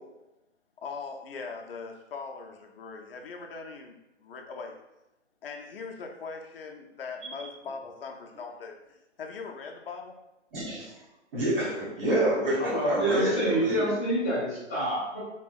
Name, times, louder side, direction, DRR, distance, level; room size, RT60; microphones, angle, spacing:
voice 1, 0.8-4.8 5.4-10.2 13.2-13.5, left 4 dB, 50° left, 2 dB, 0.5 m, -41 dB
voice 2, 10.5-10.9 11.3-13.9, right 1 dB, 50° right, -7 dB, 1.4 m, -27 dB
voice 3, 12.5-15.2, equal, 5° left, -10 dB, 0.9 m, -27 dB
2.9 x 2.7 x 2.3 m, 0.95 s
hypercardioid pair, 160°, 37 cm